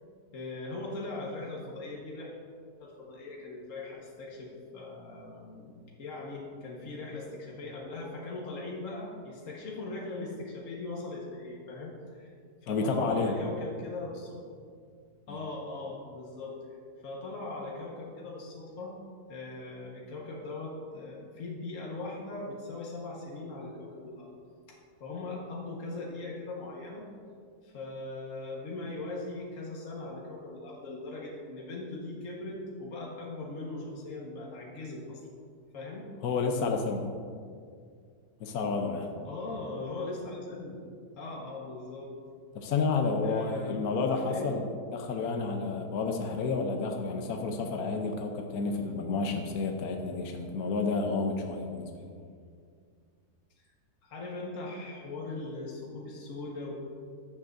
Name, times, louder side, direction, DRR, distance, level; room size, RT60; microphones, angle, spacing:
voice 1, 0.3-2.4 2.8-5.7 6.0-12.3 12.6-14.4 15.3-16.6 17.0-19.0 19.3-24.3 24.7-27.1 27.6-35.2 35.7-36.1 39.2-40.8 41.1-42.1 43.2-44.5 54.0-56.7, left 2 dB, 55° left, -3 dB, 1.8 m, -40 dB
voice 2, 12.7-13.3 15.3-15.4 36.2-37.1 38.4-39.1 42.5-52.1, left 4 dB, 70° left, 3 dB, 1.3 m, -30 dB
14.0 x 10.0 x 2.7 m, 2.2 s
omnidirectional pair, 1.7 m